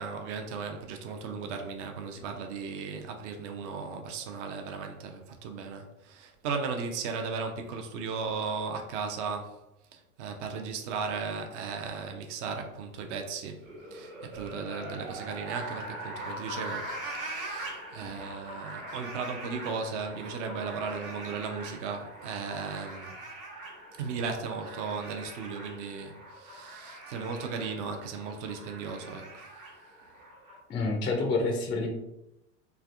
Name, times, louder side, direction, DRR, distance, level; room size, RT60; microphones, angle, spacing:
voice 1, 0.0-9.6 9.9-13.6 13.9-23.1 24.0-29.4, right 5 dB, 60° right, 0.6 m, -36 dB
sound 1, 13.6-30.6, right 1 dB, 85° right, 1.4 m, -42 dB
voice 2, 30.7-31.9, left 3 dB, 15° left, 0.3 m, -28 dB
3.3 x 2.4 x 2.5 m
hypercardioid pair, 90°, 41 cm